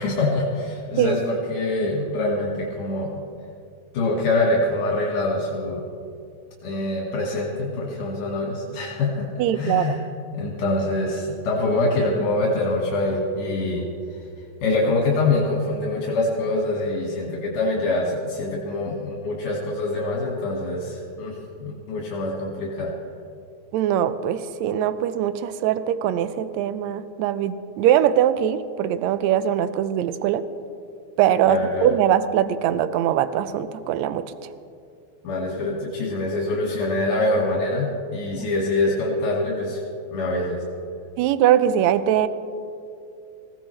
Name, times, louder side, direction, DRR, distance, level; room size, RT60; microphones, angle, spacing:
voice 1, 0.0-3.1 3.9-5.8 6.6-9.3 9.5-10.0 10.3-13.8 14.6-22.9 31.4-31.9 35.2-39.8 40.1-40.6, left 2 dB, 75° left, -3 dB, 3.1 m, -24 dB
voice 2, 9.4-10.0 23.7-30.5 31.2-34.2 38.4-38.5 41.2-42.3, right 10 dB, 75° right, 13 dB, 1.7 m, -21 dB
21.0 x 16.0 x 3.2 m, 2.4 s
omnidirectional pair, 3.6 m